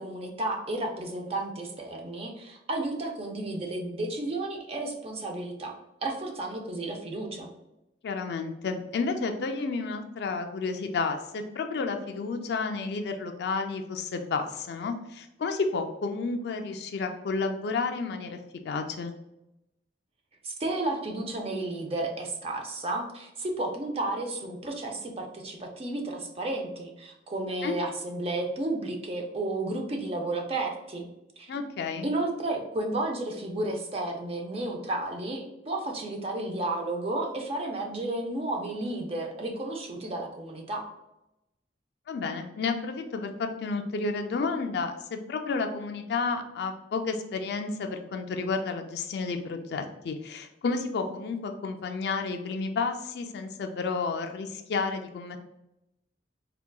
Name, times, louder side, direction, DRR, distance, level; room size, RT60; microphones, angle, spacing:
voice 1, 0.0-5.7 6.0-7.5 20.4-31.1 31.4-31.5 32.0-40.8, right 2 dB, 35° right, 2 dB, 0.4 m, -32 dB
voice 2, 8.0-18.4 18.6-19.1 27.6-27.8 31.5-32.1 42.1-55.4, left 4 dB, 65° left, 5 dB, 0.3 m, -31 dB
3.7 x 2.2 x 2.2 m, 0.88 s
head